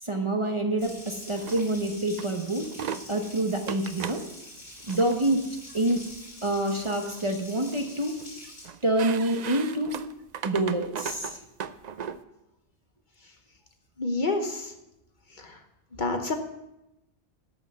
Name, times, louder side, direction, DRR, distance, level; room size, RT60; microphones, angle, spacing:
voice 1, 0.0-2.7 3.1-4.2 4.9-5.4 5.7-6.0 6.4-8.2 8.8-10.0 10.4-11.4, right 1 dB, 30° right, 3 dB, 0.9 m, -27 dB
Water tap faucet, 0.8-8.7, left 1 dB, 65° left, 3.7 m, -45 dB
sound 1, 1.3-1.7 2.2-2.3 2.6-3.0 3.7-4.2 4.8-5.1 5.9-6.1 6.6-7.3 7.6-8.2 8.6-12.2, right 8 dB, 55° right, 0.5 m, -37 dB
voice 2, 14.0-14.7 15.4-15.6 16.0-16.3, left 2 dB, 45° left, 5 dB, 1.1 m, -28 dB
12.5 x 5.7 x 6.8 m, 0.90 s
omnidirectional pair, 1.2 m